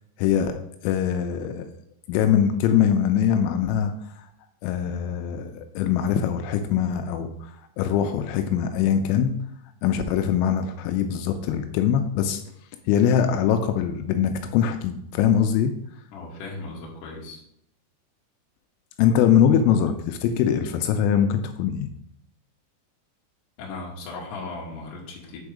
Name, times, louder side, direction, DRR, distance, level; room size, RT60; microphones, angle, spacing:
voice 1, 0.2-1.7 2.1-4.3 4.6-9.3 9.8-12.4 12.9-15.7 19.0-21.9, left 8 dB, 85° left, 7 dB, 3.1 m, -22 dB
voice 2, 16.1-17.4 23.6-25.4, left 3 dB, 60° left, -3 dB, 2.4 m, -37 dB
6.9 x 4.5 x 4.9 m, 0.73 s
omnidirectional pair, 5.8 m